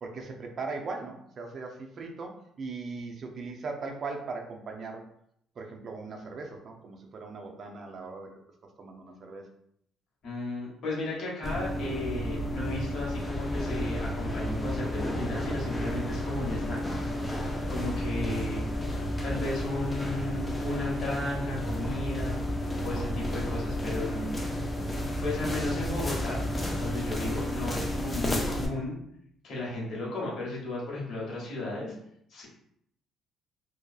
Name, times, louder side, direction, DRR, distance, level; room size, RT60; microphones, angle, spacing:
voice 1, 0.0-5.0 5.6-8.4 8.8-9.5 18.2-18.4, right 3 dB, 45° right, 3 dB, 0.5 m, -39 dB
voice 2, 10.2-16.8 17.7-18.6 19.2-22.3 22.8-24.3 25.2-26.4 26.8-29.0 29.4-31.9 32.3-32.5, left 2 dB, 60° left, -4 dB, 1.0 m, -34 dB
sound 1, 11.4-28.7, equal, 15° left, 0.4 m, -32 dB
2.6 x 2.3 x 2.3 m, 0.70 s
cardioid pair, 105°, 0 cm